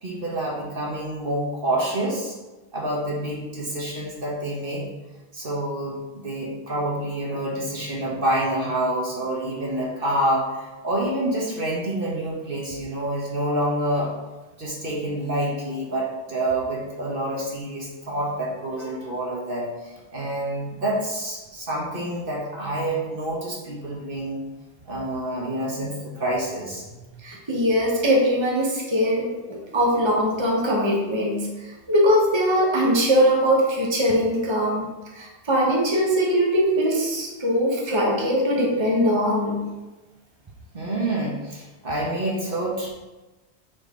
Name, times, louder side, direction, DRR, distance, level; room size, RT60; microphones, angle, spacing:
voice 1, 0.0-2.4 2.7-4.9 5.3-14.1 14.6-24.4 24.8-27.1 40.7-42.9, right 1 dB, 50° right, -3 dB, 1.4 m, -27 dB
voice 2, 27.2-34.9 35.1-39.6, equal, 25° right, -2 dB, 1.2 m, -21 dB
8.5 x 4.3 x 3.8 m, 1.1 s
omnidirectional pair, 1.2 m